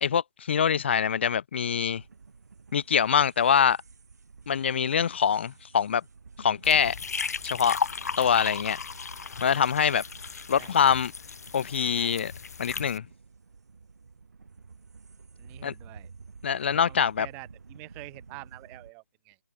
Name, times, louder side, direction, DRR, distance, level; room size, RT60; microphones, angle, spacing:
voice 1, 0.0-2.0 2.7-3.8 4.5-6.0 6.4-6.9 7.4-7.8 8.2-8.8 9.4-10.0 10.5-11.1 11.5-12.3 12.6-13.0 15.6-15.7 16.4-17.3, left 7 dB, 40° left, 0.4 m, -24 dB
sound 1, 1.6-18.9, right 4 dB, 65° right, 2.6 m, -51 dB
sound 2, 6.6-13.0, left 5 dB, 60° left, 1.1 m, -36 dB
voice 2, 10.6-11.0 15.4-16.1 16.6-19.4, right 30 dB, 15° right, 0.7 m, -47 dB
figure-of-eight pair, 155°, 10 cm